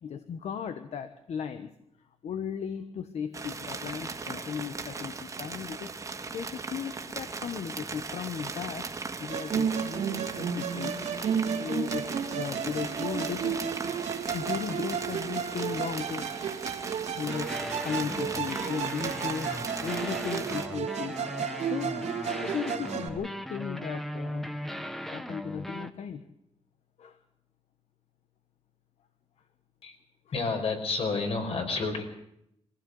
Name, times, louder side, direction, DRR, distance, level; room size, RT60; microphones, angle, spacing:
voice 1, 0.0-1.7 2.2-6.0 6.3-8.9 9.2-11.0 11.6-13.6 14.3-16.6 17.1-17.5 17.8-21.2 21.6-22.0 22.4-24.5 25.1-26.2 27.0-27.2, left 7 dB, 75° left, 9 dB, 1.3 m, -36 dB
sound 1, 3.3-20.7, right 4 dB, 30° right, 1.8 m, -38 dB
Musical instrument, 9.3-23.1, right 7 dB, 85° right, 2.8 m, -33 dB
sound 2, 17.2-25.9, equal, ahead, 1.2 m, -38 dB
voice 2, 30.3-32.0, left 4 dB, 60° left, 5 dB, 4.9 m, -30 dB
22.5 x 16.0 x 7.9 m, 0.78 s
wide cardioid pair, 150°, 11 cm